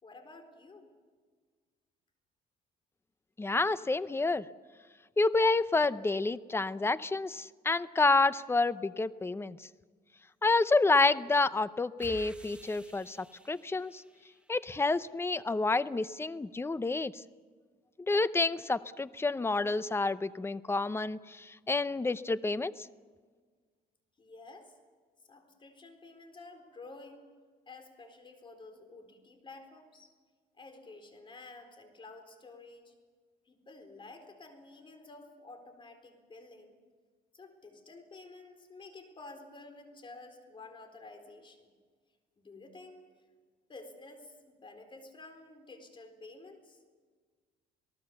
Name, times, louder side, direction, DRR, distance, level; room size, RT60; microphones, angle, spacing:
voice 1, 0.0-0.9 24.2-24.7 25.3-27.2 27.7-30.1 30.6-32.9 33.4-36.8 37.3-41.7 42.4-43.1 43.7-46.8, left 3 dB, 30° left, 6 dB, 4.1 m, -51 dB
voice 2, 3.4-4.5 5.2-9.6 10.4-14.0 14.5-17.1 18.1-22.9, left 3 dB, 15° left, 15 dB, 0.7 m, -29 dB
sound 1, 12.0-14.7, equal, 5° right, 1.3 m, -53 dB
27.5 x 18.5 x 7.0 m, 1.5 s
cardioid pair, 110°, 17 cm